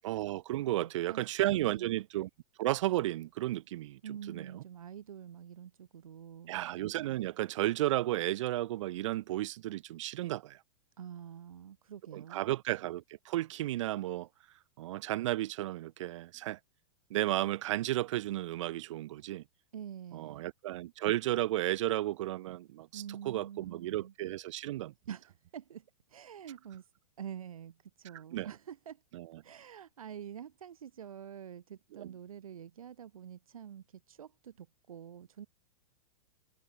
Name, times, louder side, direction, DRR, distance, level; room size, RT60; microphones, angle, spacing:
voice 1, 0.0-2.3 2.6-4.0 4.3-4.6 6.5-10.6 12.1-14.3 14.8-16.6 17.1-19.4 20.1-24.9 28.3-28.5 29.1-29.4 31.9-32.1, right 15 dB, 65° right, 0.7 m, -33 dB
voice 2, 0.7-2.0 4.0-6.6 11.0-12.6 19.7-20.4 22.9-24.1 25.1-26.9 27.2-29.0 29.4-35.5, right 9 dB, 90° right, 5.6 m, -47 dB
hypercardioid pair, 145°, 17 cm